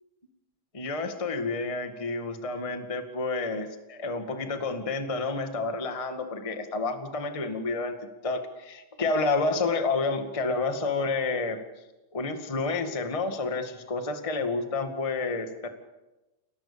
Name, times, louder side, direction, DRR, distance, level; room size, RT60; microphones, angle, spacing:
voice 1, 0.7-7.9 8.2-11.6 12.1-15.7, left 3 dB, 15° left, 6 dB, 1.3 m, -29 dB
29.5 x 18.5 x 7.0 m, 1.1 s
omnidirectional pair, 3.8 m